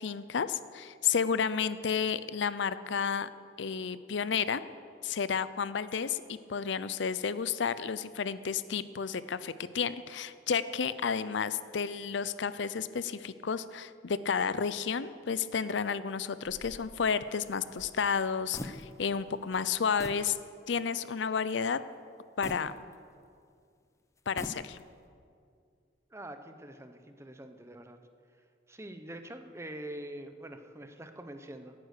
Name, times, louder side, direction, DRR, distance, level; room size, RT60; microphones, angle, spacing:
voice 1, 0.0-3.3 3.6-4.6 5.0-20.4 20.7-21.8 22.4-22.7 24.3-24.8, left 6 dB, 65° left, 14 dB, 0.5 m, -31 dB
sound 1, 16.4-19.2 19.5-19.7 20.0-20.3 20.8-20.9 22.4-23.4 24.2-25.0, left 1 dB, 15° left, 0.6 m, -45 dB
voice 2, 26.1-28.0 28.7-31.7, right 1 dB, 15° right, 7 dB, 0.8 m, -44 dB
17.5 x 9.5 x 6.6 m, 2.3 s
head